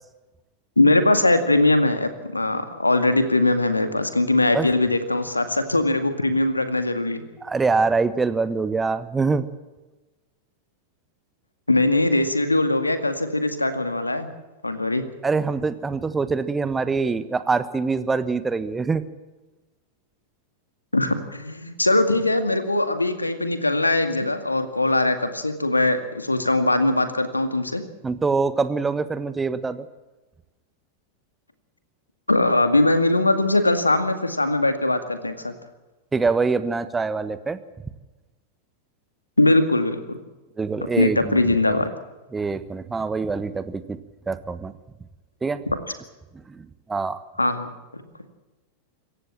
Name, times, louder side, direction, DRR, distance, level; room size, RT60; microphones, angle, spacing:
voice 1, 0.8-7.2 11.7-14.3 14.6-15.0 20.9-27.8 32.3-35.5 39.4-40.2 41.0-41.9 47.4-48.0, left 2 dB, 85° left, 10 dB, 2.1 m, -21 dB
voice 2, 7.4-9.5 15.2-19.0 28.0-29.9 36.1-37.6 40.6-41.8 42.3-44.0 44.3-44.7 45.4-45.6 46.5-47.2, right 4 dB, 15° right, 14 dB, 1.3 m, -24 dB
26.0 x 15.0 x 7.5 m, 1.1 s
figure-of-eight pair, 90°, 0 cm